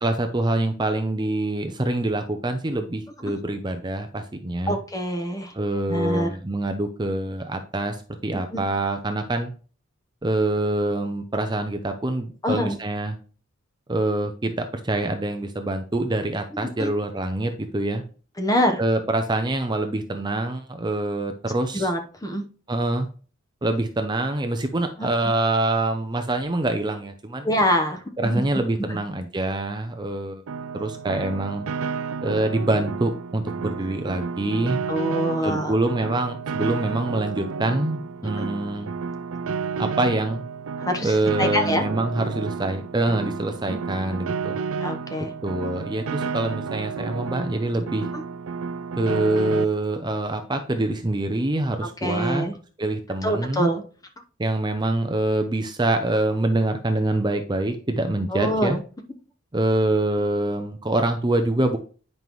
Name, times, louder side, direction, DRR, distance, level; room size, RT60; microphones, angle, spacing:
voice 1, 0.0-4.8 5.5-8.0 8.2-9.5 10.2-13.1 13.9-18.0 18.8-21.9 22.7-23.1 23.6-27.5 28.2-30.4 30.7-31.7 32.2-34.8 35.4-38.9 39.8-40.4 41.0-44.6 45.4-48.1 49.0-52.4 52.8-53.7 54.4-58.8 59.5-61.8, right 2 dB, 20° right, 6 dB, 0.6 m, -25 dB
voice 2, 4.7-5.5 5.9-6.3 8.5-8.6 12.4-12.8 16.5-16.9 18.4-18.8 21.7-22.4 25.0-25.1 27.4-28.4 28.9-29.0 34.9-35.8 38.4-38.5 40.8-41.9 43.7-43.8 44.8-45.3 48.1-48.2 52.0-52.5 53.2-53.8 58.3-58.8, equal, 15° left, 5 dB, 1.0 m, -25 dB
Piano, 30.5-49.6, right 5 dB, 85° right, 0.4 m, -31 dB
9.5 x 5.4 x 3.1 m, 0.39 s
head